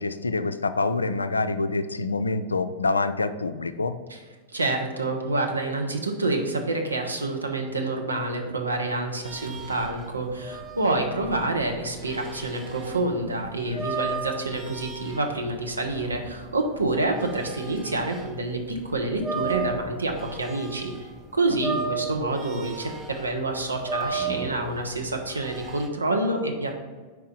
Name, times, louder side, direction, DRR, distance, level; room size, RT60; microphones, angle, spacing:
voice 1, 0.0-4.1 13.7-13.9, left 3 dB, 80° left, 11 dB, 0.3 m, -26 dB
voice 2, 4.5-20.9 21.3-26.7, right 2 dB, 80° right, 3 dB, 0.8 m, -27 dB
sound 1, 9.2-18.3 18.7-21.2 21.5-25.9, right 4 dB, 15° right, 0.7 m, -35 dB
4.7 x 4.6 x 5.3 m, 1.4 s
figure-of-eight pair, 90°, 0 cm